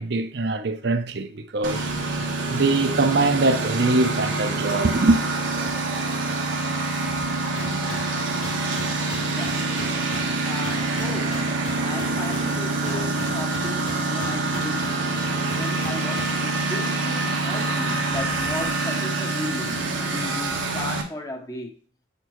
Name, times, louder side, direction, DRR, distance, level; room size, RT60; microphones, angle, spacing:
voice 1, 0.0-1.9 2.5-5.2, right 3 dB, 60° right, 0.5 m, -22 dB
Engine, 1.6-21.0, right 3 dB, 90° right, 1.2 m, -26 dB
sound 1, 7.5-16.4, left 2 dB, 90° left, 1.0 m, -39 dB
voice 2, 8.9-9.7 10.4-14.9 15.5-21.7, left 1 dB, 20° left, 0.6 m, -36 dB
7.9 x 4.4 x 3.0 m
head